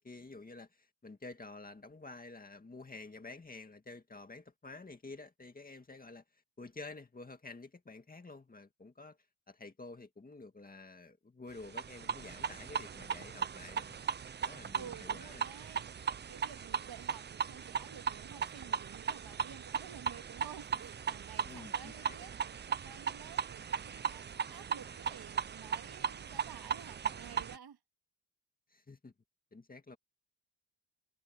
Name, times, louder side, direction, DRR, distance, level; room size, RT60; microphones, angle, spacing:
voice 1, 0.0-9.2 9.5-14.1 14.4-15.5 21.5-22.2 28.7-29.1 29.5-30.0, left 3 dB, 20° left, 2.1 m, -50 dB
sound 1, 11.6-27.6, right 7 dB, 25° right, 0.4 m, -38 dB
voice 2, 14.7-27.8, right 8 dB, 55° right, 2.1 m, -52 dB
cardioid pair, 135°, 46 cm